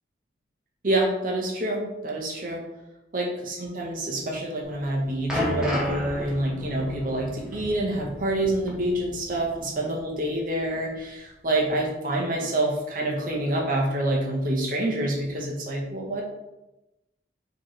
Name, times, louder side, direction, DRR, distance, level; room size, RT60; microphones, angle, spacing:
voice 1, 0.8-2.6 3.1-16.2, right 1 dB, 50° right, -1 dB, 0.8 m, -27 dB
sound 1, 4.7-9.6 9.8-10.0 10.7-10.8, left 1 dB, 5° right, 0.8 m, -33 dB
4.7 x 2.9 x 3.0 m, 0.96 s
head